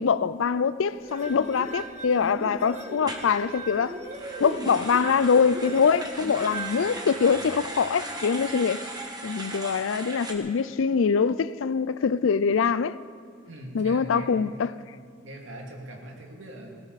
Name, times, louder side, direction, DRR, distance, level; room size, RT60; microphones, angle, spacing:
voice 1, 0.0-3.9 4.4-8.8 9.2-13.0 13.7-14.7, left 6 dB, 90° left, 0.4 m, -24 dB
sound 1, 0.9-7.7, right 1 dB, 35° right, 1.6 m, -38 dB
sound 2, 3.0-3.3 4.0-10.3, right 2 dB, 20° right, 1.5 m, -38 dB
voice 2, 13.5-14.3 15.2-16.7, right 1 dB, 75° right, 2.5 m, -41 dB
19.0 x 17.0 x 4.1 m
head